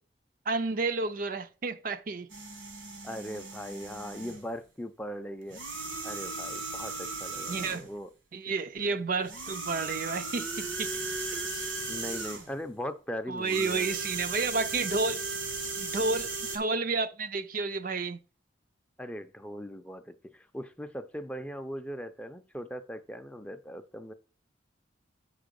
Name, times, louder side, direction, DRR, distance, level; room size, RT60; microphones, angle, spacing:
voice 1, 0.5-2.3 7.5-7.9 8.3-10.9 13.3-15.2 15.8-18.2, right 3 dB, 45° right, 0.5 m, -31 dB
sound 1, 2.3-4.5 5.5-7.9 9.2-12.6 13.4-16.6, right 3 dB, 85° right, 2.0 m, -36 dB
voice 2, 3.0-5.6 6.0-8.1 11.9-14.0 19.0-24.1, equal, 5° left, 0.5 m, -39 dB
8.2 x 4.9 x 5.2 m
head